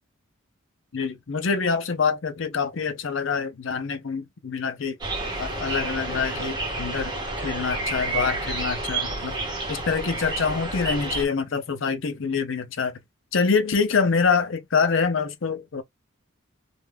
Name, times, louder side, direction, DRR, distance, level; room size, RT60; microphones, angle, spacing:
voice 1, 0.9-5.0 5.4-9.3 9.7-13.0 13.3-15.8, left 5 dB, 60° left, 0.6 m, -25 dB
sound 1, 5.0-11.3, right 2 dB, 20° right, 0.8 m, -30 dB
2.4 x 2.2 x 3.3 m
head